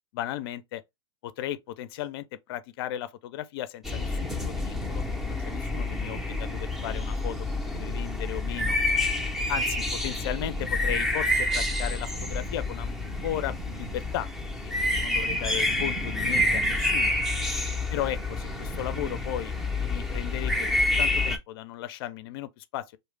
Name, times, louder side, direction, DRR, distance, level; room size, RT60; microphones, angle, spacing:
voice 1, 0.1-0.8 1.2-7.4 7.7-8.8 9.5-14.3 14.6-14.7 15.0-17.1 17.9-22.9, left 12 dB, 55° left, 0.4 m, -35 dB
sound 1, 3.8-21.4, left 2 dB, 5° right, 0.5 m, -28 dB
2.4 x 2.1 x 3.2 m
hypercardioid pair, 120°, 15 cm